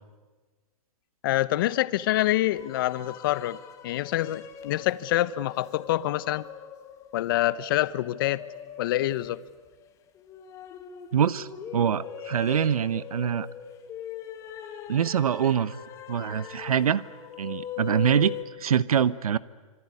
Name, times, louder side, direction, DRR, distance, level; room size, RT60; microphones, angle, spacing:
voice 1, 1.2-6.5 7.1-8.4 8.8-9.4, left 15 dB, 40° left, 17 dB, 0.9 m, -26 dB
sound 1, 2.5-18.4, left 10 dB, 15° left, 1.6 m, -41 dB
voice 2, 11.1-13.5 14.9-15.8 16.1-17.0 17.4-19.4, right 8 dB, 85° right, 18 dB, 1.0 m, -24 dB
26.0 x 23.5 x 9.7 m, 1.4 s
hypercardioid pair, 160°, 18 cm